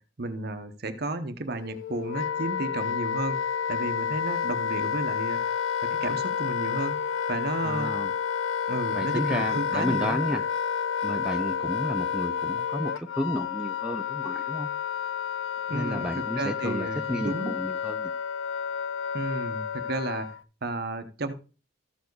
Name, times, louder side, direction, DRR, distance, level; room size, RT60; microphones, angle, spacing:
voice 1, 0.2-3.4 3.7-5.4 6.0-7.0 7.3-7.9 8.7-10.2 15.7-17.6 19.1-21.3, right 2 dB, 55° right, 9 dB, 0.9 m, -33 dB
Wind instrument woodwind instrument, 1.6-20.4, left 7 dB, 75° left, 0.4 m, -30 dB
voice 2, 7.6-8.1 8.9-10.4 11.0-14.7 15.7-18.1, equal, 5° right, 4 dB, 0.5 m, -32 dB
13.5 x 4.8 x 4.6 m, 0.35 s
head